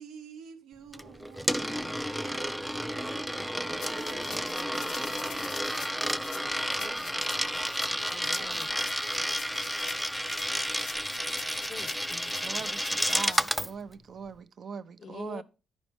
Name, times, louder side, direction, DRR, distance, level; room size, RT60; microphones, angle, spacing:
voice 1, 0.0-8.8, right 7 dB, 80° right, 0.9 m, -51 dB
Coin (dropping), 0.9-13.7, equal, ahead, 0.3 m, -31 dB
rain stick, 3.8-13.5, left 9 dB, 85° left, 0.7 m, -45 dB
voice 2, 8.1-9.1 11.7-12.7 15.0-15.4, left 5 dB, 50° left, 0.6 m, -46 dB
voice 3, 12.4-15.4, right 6 dB, 55° right, 0.6 m, -41 dB
10.5 x 5.1 x 3.4 m
cardioid pair, 90°, 0 cm